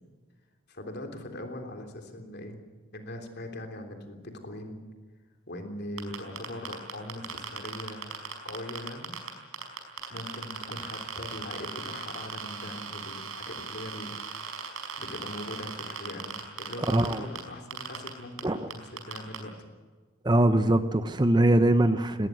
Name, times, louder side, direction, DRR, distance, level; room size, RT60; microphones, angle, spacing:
voice 1, 0.7-2.6 2.9-4.8 5.5-9.1 10.1-14.2 15.0-19.7, left 1 dB, 50° left, 4 dB, 3.4 m, -41 dB
sound 1, 6.0-9.3 9.5-17.4 17.7-18.1 18.4-18.5 18.7-19.4, right 6 dB, 85° right, 5.1 m, -37 dB
voice 2, 16.9-17.3 18.4-18.7 20.2-22.3, right 1 dB, 20° right, 10 dB, 0.8 m, -22 dB
19.0 x 19.0 x 9.3 m, 1.4 s
head